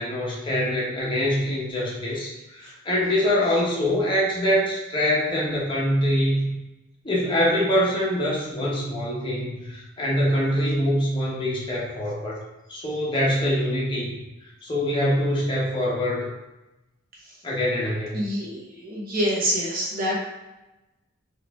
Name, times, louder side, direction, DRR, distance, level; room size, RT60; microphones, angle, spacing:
voice 1, 0.0-6.5 7.0-12.4 12.7-14.1 14.6-16.3 17.4-18.2, equal, 25° left, -5 dB, 1.1 m, -24 dB
voice 2, 18.1-20.2, equal, 45° right, -3 dB, 1.2 m, -26 dB
4.7 x 3.1 x 3.5 m, 1.0 s
head